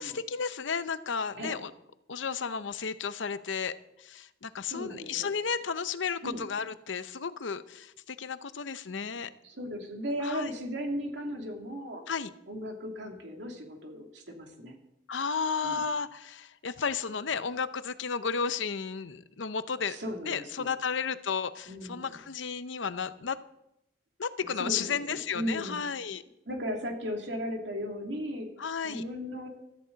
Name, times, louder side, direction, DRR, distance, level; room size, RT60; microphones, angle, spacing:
voice 1, 0.0-1.7 2.1-9.3 10.2-10.5 12.1-12.3 15.1-20.0 20.3-23.4 24.2-26.2 28.6-29.0, left 6 dB, 85° left, 13 dB, 0.7 m, -33 dB
voice 2, 4.7-5.3 6.2-6.4 9.4-12.1 12.5-14.8 15.6-15.8 19.9-20.7 21.7-22.2 24.4-25.8 26.5-28.5 28.8-29.5, equal, 70° right, 2 dB, 2.7 m, -36 dB
16.5 x 13.5 x 4.0 m, 0.83 s
head